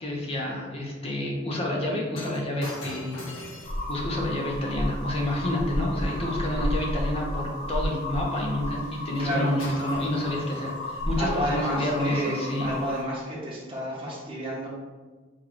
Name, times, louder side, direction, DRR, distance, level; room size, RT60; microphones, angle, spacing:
voice 1, 0.0-3.2 3.9-12.7, left 1 dB, 30° left, -1 dB, 0.6 m, -29 dB
Shatter, 2.1-6.5 9.1-9.3 9.6-11.1 11.8-12.0, left 1 dB, 85° left, 1.0 m, -43 dB
sound 1, 3.6-13.0, left 1 dB, 60° left, 1.2 m, -32 dB
voice 2, 6.0-6.7 9.2-9.5 11.2-14.7, equal, 30° right, -6 dB, 0.8 m, -31 dB
3.5 x 2.2 x 3.7 m, 1.3 s
head